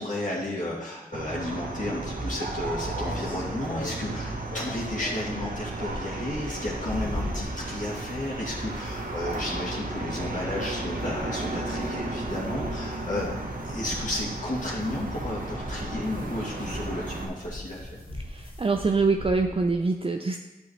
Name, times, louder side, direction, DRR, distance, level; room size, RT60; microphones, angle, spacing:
voice 1, 0.0-13.3 13.6-18.0, left 1 dB, 55° left, -6 dB, 2.3 m, -33 dB
sound 1, 1.1-17.3, right 2 dB, 65° right, 1.2 m, -34 dB
sound 2, 2.6-19.8, left 1 dB, 80° left, 1.8 m, -41 dB
voice 2, 18.2-20.4, right 4 dB, 35° right, 4 dB, 0.5 m, -25 dB
11.5 x 5.4 x 3.2 m, 1.1 s
cardioid pair, 45°, 16 cm